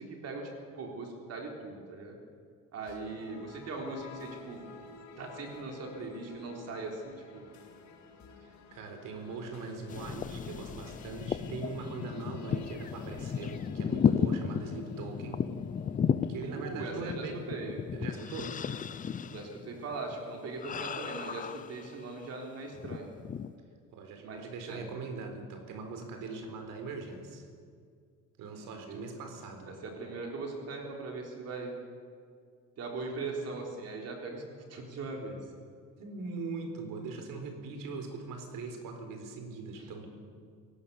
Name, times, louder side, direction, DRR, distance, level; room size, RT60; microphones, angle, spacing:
voice 1, 0.0-2.2 2.7-4.6 5.2-7.4 16.4-17.8 19.3-23.1 24.2-24.4 24.7-24.9 26.2-26.4 28.5-29.0 29.7-31.7 32.8-34.4 34.7-35.4 39.8-40.1, right 3 dB, 50° right, 1 dB, 3.8 m, -40 dB
sound 1, 2.9-15.2, left 4 dB, 60° left, 2.6 m, -52 dB
voice 2, 8.4-15.5 16.3-17.4 17.9-18.6 23.9-27.5 28.4-29.7 36.0-40.1, right 4 dB, 85° right, 5 dB, 4.1 m, -41 dB
sound 2, 9.9-22.3 22.7-23.5, left 7 dB, 25° left, 0.5 m, -34 dB
28.5 x 17.0 x 7.0 m, 2.2 s
cardioid pair, 165°, 32 cm